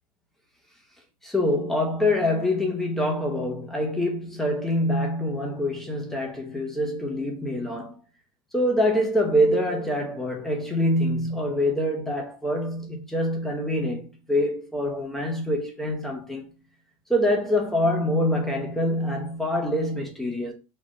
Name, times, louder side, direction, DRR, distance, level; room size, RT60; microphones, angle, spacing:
voice 1, 1.2-8.0 8.5-16.5 17.1-20.5, left 1 dB, ahead, 0.4 m, -25 dB
3.5 x 2.0 x 3.7 m
supercardioid pair, 180°, 18 cm